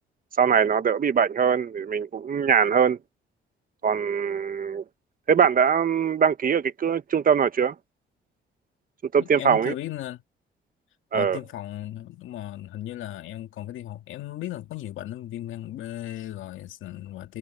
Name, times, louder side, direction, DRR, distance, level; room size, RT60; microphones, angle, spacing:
voice 1, 0.4-3.0 3.8-4.8 5.3-7.7 9.1-9.7 11.1-11.4, right 7 dB, 45° right, 1.3 m, -22 dB
voice 2, 9.2-10.2 11.1-17.4, left 13 dB, 80° left, 2.2 m, -36 dB
cardioid pair, 90°, 20 cm